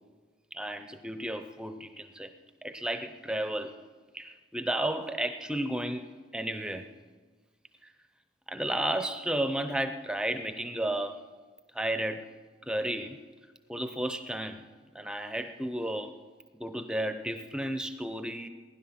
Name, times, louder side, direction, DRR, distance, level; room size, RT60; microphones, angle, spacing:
voice 1, 0.5-2.3 2.6-3.8 4.1-6.9 8.5-11.2 11.7-12.2 12.6-13.2 13.7-14.6 14.9-16.2 16.6-18.5, right 1 dB, 5° right, 8 dB, 0.6 m, -33 dB
20.0 x 11.0 x 5.8 m, 1.4 s
head